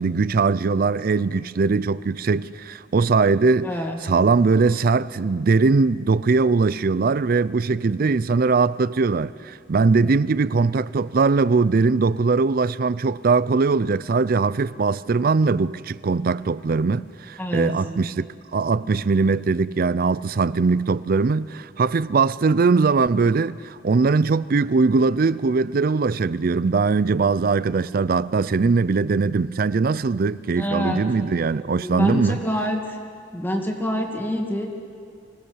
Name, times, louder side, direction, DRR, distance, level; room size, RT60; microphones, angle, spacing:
voice 1, 0.0-3.7 4.0-32.4, right 4 dB, 55° right, 0.4 m, -21 dB
voice 2, 3.6-4.0 17.4-17.7 30.6-31.0 31.8-33.0 33.3-34.7, equal, 10° left, 2.0 m, -26 dB
26.0 x 17.5 x 6.4 m
head